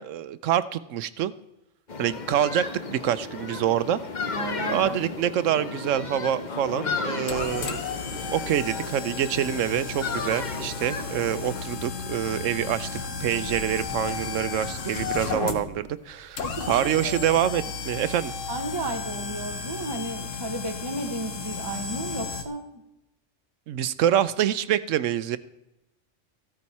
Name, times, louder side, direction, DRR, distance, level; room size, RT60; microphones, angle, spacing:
voice 1, 0.0-1.3 2.0-4.0 4.7-7.9 8.3-12.9 13.2-18.3 23.7-25.4, right 10 dB, 85° right, 14 dB, 1.0 m, -26 dB
sound 1, 1.9-11.6, left 4 dB, 40° left, 1.0 m, -34 dB
voice 2, 4.4-5.0 16.4-17.1 18.5-22.7, right 2 dB, 20° right, 4 dB, 1.0 m, -33 dB
sound 2, 6.5-22.4, left 5 dB, 90° left, 1.4 m, -34 dB
14.5 x 13.5 x 4.2 m, 0.90 s
omnidirectional pair, 1.3 m